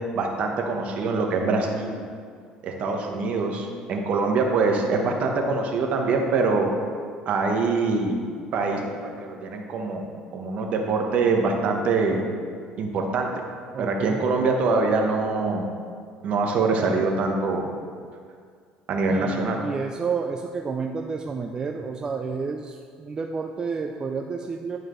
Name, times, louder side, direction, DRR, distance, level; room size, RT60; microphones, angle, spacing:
voice 1, 0.0-2.0 2.6-6.7 7.3-8.2 8.5-8.9 9.2-10.1 10.3-12.2 12.8-13.3 13.8-15.7 16.2-17.7 18.9-19.6, right 3 dB, 55° right, 2 dB, 1.0 m, -24 dB
voice 2, 13.7-14.2 19.1-24.8, right 5 dB, 25° right, 3 dB, 0.3 m, -30 dB
11.0 x 4.7 x 3.1 m, 2.1 s
cardioid pair, 115°, 3 cm